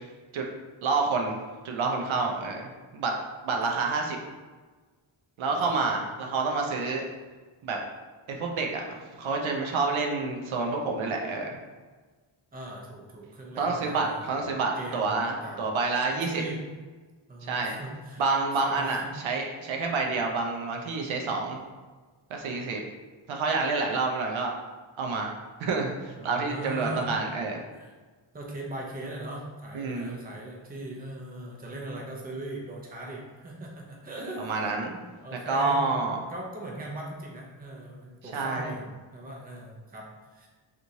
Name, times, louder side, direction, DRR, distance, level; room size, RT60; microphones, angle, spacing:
voice 1, 0.8-1.4 1.6-3.2 3.4-4.2 5.4-7.0 7.6-7.8 8.3-11.6 13.6-16.4 17.5-17.8 18.2-21.6 22.3-22.8 23.3-24.5 25.0-25.3 25.6-27.6 29.7-30.2 34.4-34.9 35.5-36.2 38.3-38.7, right 3 dB, 75° right, 1 dB, 0.5 m, -28 dB
voice 2, 12.5-14.3 14.8-15.6 16.1-16.6 17.3-18.2 18.6-19.1 26.2-27.1 27.7-27.9 28.3-40.1 40.3-40.5, right 1 dB, 20° right, -2 dB, 0.5 m, -39 dB
3.0 x 2.5 x 2.6 m, 1.4 s
wide cardioid pair, 90°, 49 cm